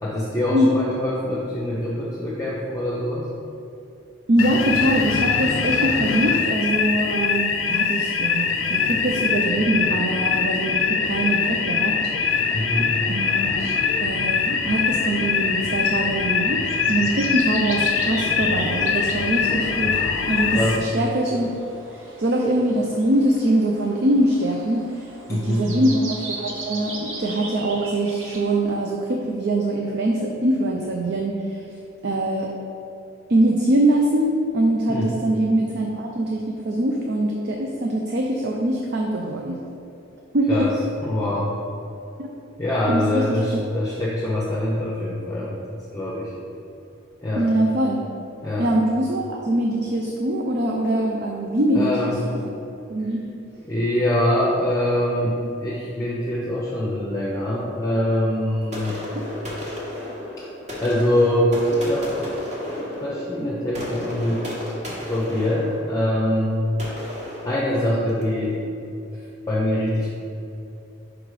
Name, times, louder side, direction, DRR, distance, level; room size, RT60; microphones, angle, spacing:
voice 1, 0.0-3.3 12.5-13.0 20.5-20.8 25.3-25.7 34.9-35.1 40.5-40.7 41.0-41.5 42.6-46.3 47.2-47.5 48.4-48.7 51.7-52.2 53.7-59.0 60.4-60.5 60.8-62.1 63.0-64.4 65.0-66.5 67.4-68.6 69.1-69.2 69.5-70.2, left 1 dB, 15° left, -6 dB, 0.7 m, -24 dB
voice 2, 4.3-12.0 12.3-12.6 13.1-13.7 14.0-20.0 20.3-21.5 22.2-31.6 32.0-32.5 33.3-39.6 40.3-40.7 42.2-42.3 42.9-43.4 47.4-48.0 48.6-52.4 52.9-53.3 59.1-59.2, right 1 dB, 55° right, 0 dB, 0.5 m, -23 dB
sound 1, 4.4-20.8, left 6 dB, 75° left, 0.4 m, -23 dB
sound 2, 11.0-28.6, right 2 dB, 80° right, 1.0 m, -39 dB
sound 3, 58.7-68.4, left 1 dB, 35° right, 1.3 m, -33 dB
5.3 x 4.8 x 4.8 m, 2.7 s
head